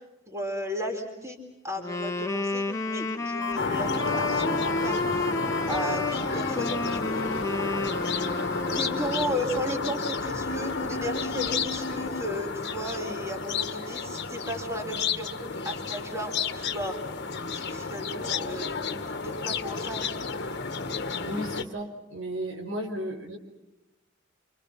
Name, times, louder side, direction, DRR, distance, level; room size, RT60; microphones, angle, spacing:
voice 1, 0.3-1.4 1.6-5.0 5.7-7.5 8.7-17.0 17.5-20.2, equal, 15° right, 3 dB, 4.2 m, -35 dB
Wind instrument woodwind instrument, 1.8-9.5, left 2 dB, 15° left, 1.7 m, -31 dB
sound 1, 3.4-5.6 6.9-9.2 10.5-12.2, left 4 dB, 85° left, 1.3 m, -36 dB
sound 2, 3.6-21.6, left 4 dB, 60° left, 1.7 m, -31 dB
voice 2, 21.3-23.4, right 1 dB, 70° right, 3 dB, 5.2 m, -35 dB
28.5 x 28.0 x 5.9 m, 0.98 s
head